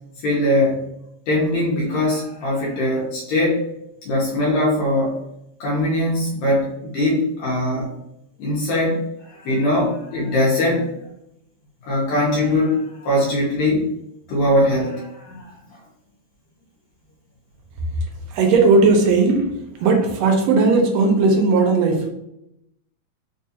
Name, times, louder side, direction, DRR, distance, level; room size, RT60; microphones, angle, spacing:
voice 1, 0.2-0.8 1.3-3.6 4.1-5.1 5.6-7.9 8.4-9.0 9.3-10.9 11.8-13.8 14.3-15.5, left 1 dB, 75° left, -5 dB, 2.0 m, -21 dB
voice 2, 18.3-19.5 19.8-22.1, right 3 dB, 80° right, 2 dB, 1.7 m, -16 dB
4.7 x 2.3 x 2.7 m, 0.81 s
omnidirectional pair, 3.3 m